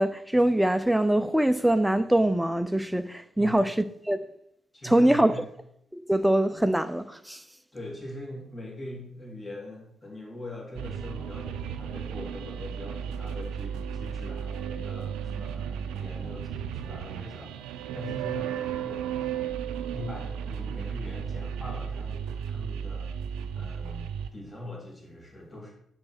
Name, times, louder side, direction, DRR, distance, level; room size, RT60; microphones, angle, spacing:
voice 1, 0.0-3.7 4.1-4.2 4.8-5.3 5.9-7.4, right 1 dB, 5° right, 0.5 m, -23 dB
voice 2, 4.7-5.5 7.7-19.1 19.9-25.7, left 1 dB, 25° left, 3.1 m, -42 dB
sound 1, 10.8-24.3, right 8 dB, 75° right, 0.4 m, -34 dB
5.3 x 4.6 x 6.1 m
hypercardioid pair, 45°, 0 cm